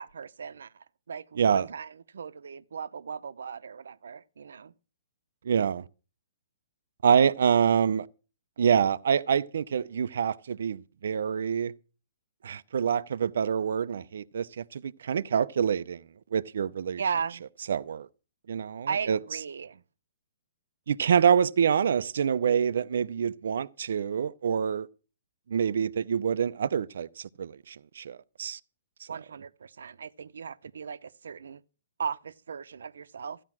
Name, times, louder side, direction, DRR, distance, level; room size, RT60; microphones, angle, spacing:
voice 1, 0.0-4.7 7.2-7.6 17.0-17.4 18.9-19.8 29.1-31.6 32.0-33.4, right 6 dB, 80° right, 0.9 m, -37 dB
voice 2, 5.5-5.9 7.0-8.1 8.6-11.7 12.4-16.0 16.3-17.0 17.7-18.1 18.5-19.2 20.9-24.9 25.5-28.6, right 7 dB, 60° right, 0.6 m, -26 dB
15.0 x 11.0 x 6.1 m
hypercardioid pair, 175°, 0 cm